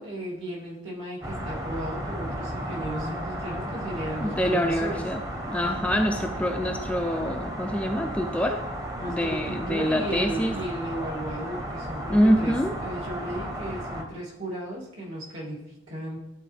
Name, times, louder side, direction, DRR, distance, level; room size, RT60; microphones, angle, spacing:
voice 1, 0.0-5.0 5.6-6.0 8.9-16.2, right 1 dB, 65° right, -4 dB, 2.3 m, -35 dB
sound 1, 1.2-14.0, equal, 15° right, 0.8 m, -34 dB
voice 2, 4.2-5.2 5.5-8.6 9.1-10.6 12.1-12.7, equal, 5° left, 4 dB, 0.3 m, -25 dB
11.0 x 4.1 x 3.3 m, 0.94 s
head